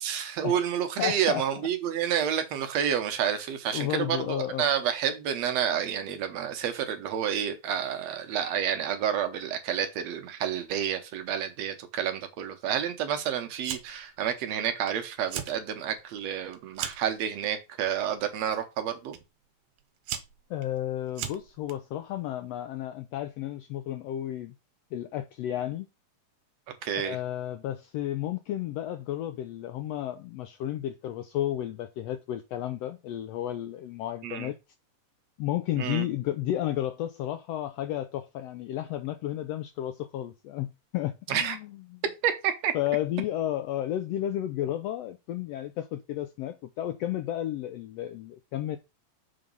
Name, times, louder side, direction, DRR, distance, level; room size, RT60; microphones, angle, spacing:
voice 1, 0.0-19.2 26.8-27.2 34.2-34.5 35.8-36.0 41.3-41.6 42.2-42.7, right 9 dB, 70° right, 1.9 m, -29 dB
voice 2, 1.0-1.4 3.7-4.7 20.5-24.5 24.9-25.9 27.0-34.5 35.4-42.0 42.7-48.8, left 12 dB, 85° left, 1.4 m, -32 dB
Fire, 13.6-14.1 14.4-14.9 15.2-15.6 16.0-17.1 17.9-18.3 19.1-19.2 19.8-21.7, right 9 dB, 85° right, 2.4 m, -37 dB
6.9 x 3.9 x 5.3 m
omnidirectional pair, 3.4 m